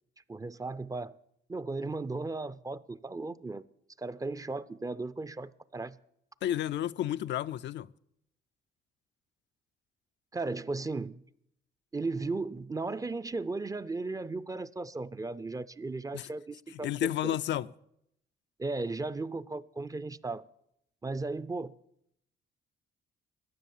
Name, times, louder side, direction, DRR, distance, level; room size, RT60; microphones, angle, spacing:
voice 1, 0.3-1.2 1.5-3.6 4.0-6.0 10.3-11.2 11.9-17.4 18.6-20.4 21.0-21.7, right 3 dB, 15° right, 0.5 m, -36 dB
voice 2, 6.4-7.9 16.1-16.3 16.8-17.7, left 12 dB, 65° left, 0.4 m, -31 dB
14.5 x 9.8 x 7.2 m
cardioid pair, 90°, 20 cm